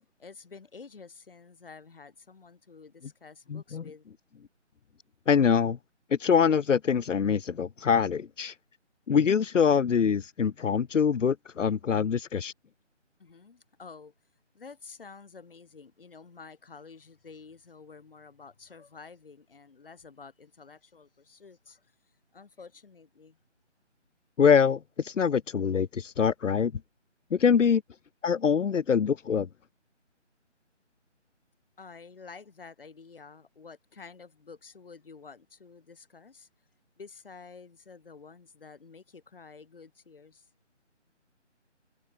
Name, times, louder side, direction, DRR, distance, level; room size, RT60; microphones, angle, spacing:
voice 1, 0.2-4.1 13.2-14.1 14.5-21.9 22.3-23.4 27.4-27.8 31.8-36.5 37.0-40.5, left 5 dB, 50° left, 3.1 m, -50 dB
voice 2, 3.5-3.8 5.3-5.8 6.2-8.5 9.1-12.5 24.4-26.7 27.3-27.8 28.2-29.5, left 7 dB, 85° left, 0.7 m, -24 dB
figure-of-eight pair, 165°, 36 cm